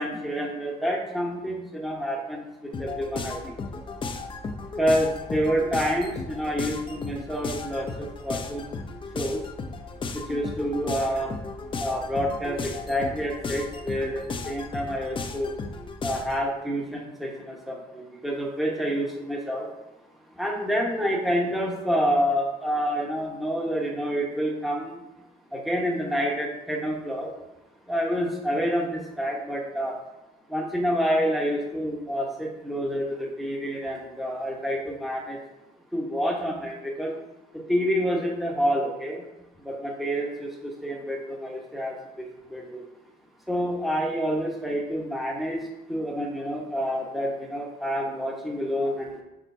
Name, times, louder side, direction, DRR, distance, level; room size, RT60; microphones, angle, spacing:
voice 1, 0.0-3.8 4.8-8.7 9.1-9.5 10.1-11.3 11.8-15.5 16.0-19.7 20.3-25.0 25.5-27.3 27.9-30.0 30.5-35.4 35.9-37.1 37.5-39.3 39.6-42.2 42.5-42.8 43.5-49.2, equal, ahead, -1 dB, 1.0 m, -28 dB
sound 1, 2.7-16.4, left 4 dB, 30° left, 0.6 m, -35 dB
6.4 x 6.1 x 2.7 m, 0.96 s
cardioid pair, 110°, 17 cm